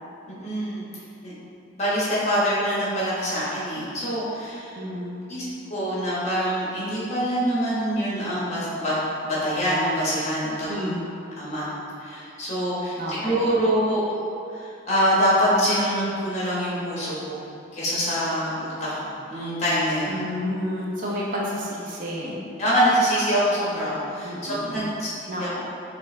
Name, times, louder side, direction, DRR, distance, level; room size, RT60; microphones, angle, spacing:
voice 1, 0.3-0.8 1.2-1.3 1.8-4.8 5.3-8.9 9.2-10.9 11.3-11.7 12.0-14.0 14.5-17.4 17.7-20.1 22.6-25.1 25.4-25.5, equal, 35° left, -8 dB, 1.2 m, -25 dB
voice 2, 4.7-5.2 10.7-11.0 13.0-13.5 20.1-22.4 24.2-24.9 25.3-25.7, equal, 40° right, -5 dB, 0.6 m, -30 dB
5.4 x 2.5 x 3.3 m, 2.6 s
head